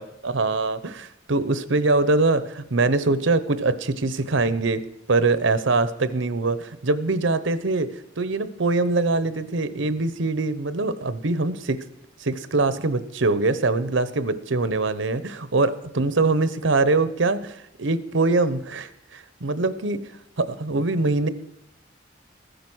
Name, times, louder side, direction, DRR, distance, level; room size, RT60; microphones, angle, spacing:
voice 1, 0.0-4.8 5.1-11.8 12.2-20.1 20.4-21.3, right 3 dB, 80° right, 14 dB, 0.9 m, -23 dB
15.0 x 10.5 x 6.2 m, 0.83 s
head